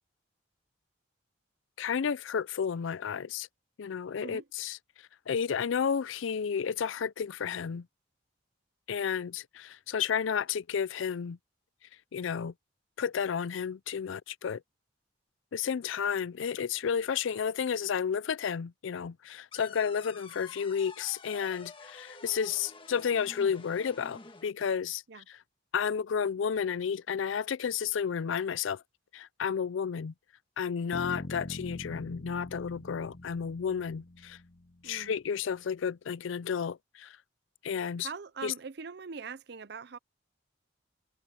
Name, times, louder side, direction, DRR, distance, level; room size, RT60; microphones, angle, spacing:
voice 1, 1.8-3.5 3.8-4.8 5.3-7.9 8.9-11.4 12.1-12.5 13.0-14.6 15.5-25.4 25.7-28.8 29.1-30.1 30.6-34.4 34.8-37.2 37.6-38.1 38.4-38.5, left 7 dB, 75° left, 0.4 m, -32 dB
sound 1, 19.5-24.5, left 3 dB, 25° left, 1.5 m, -49 dB
sound 2, 30.9-34.9, left 2 dB, 45° left, 0.7 m, -43 dB
voice 2, 34.8-35.2 38.0-40.0, right 5 dB, 55° right, 0.6 m, -42 dB
head